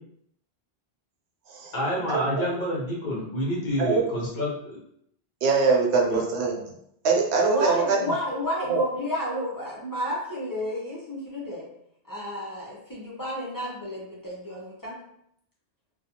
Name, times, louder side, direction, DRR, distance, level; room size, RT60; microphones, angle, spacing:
voice 1, 1.7-4.8 6.0-6.2, equal, 50° left, -4 dB, 0.8 m, -28 dB
voice 2, 5.4-6.6 7.0-8.0 8.7-8.8, right 4 dB, 85° right, 1 dB, 0.9 m, -22 dB
voice 3, 7.4-11.6 12.1-15.0, equal, 25° left, -6 dB, 0.5 m, -31 dB
2.4 x 2.2 x 2.8 m, 0.73 s
omnidirectional pair, 1.1 m